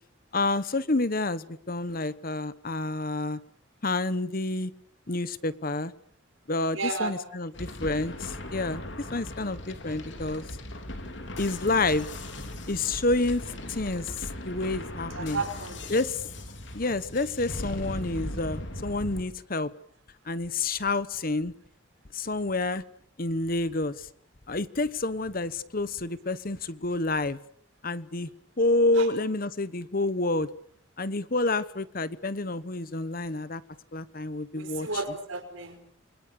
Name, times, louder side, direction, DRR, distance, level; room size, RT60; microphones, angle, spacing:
voice 1, 0.3-3.4 3.8-4.7 5.1-5.9 6.5-8.8 9.1-10.4 11.4-12.1 12.7-15.4 15.9-16.2 16.7-19.7 20.2-21.5 22.1-22.8 23.2-24.1 24.5-27.4 27.8-28.3 28.6-30.5 31.0-33.6 33.9-34.9, left 2 dB, 45° left, 16 dB, 1.1 m, -28 dB
voice 2, 6.7-7.2 15.2-15.8 28.9-29.1 34.5-35.8, right 3 dB, 75° right, 7 dB, 5.4 m, -32 dB
sound 1, 7.5-19.2, left 1 dB, 60° left, 3.7 m, -38 dB
29.0 x 23.5 x 6.9 m, 0.64 s
head